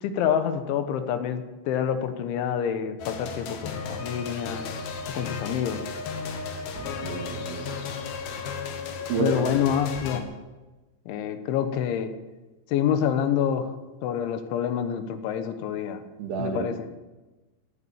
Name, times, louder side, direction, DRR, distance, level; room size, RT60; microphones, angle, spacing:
voice 1, 0.0-4.7 5.1-5.9 9.2-10.2 11.1-12.1 12.7-13.7 14.0-16.0 16.4-16.9, left 9 dB, 85° left, 9 dB, 3.6 m, -27 dB
sound 1, 3.0-10.2, left 5 dB, 65° left, 3.0 m, -34 dB
voice 2, 6.8-7.8 9.1-9.3 16.2-16.7, right 5 dB, 65° right, 3 dB, 3.9 m, -30 dB
16.0 x 9.6 x 8.7 m, 1.2 s
omnidirectional pair, 5.3 m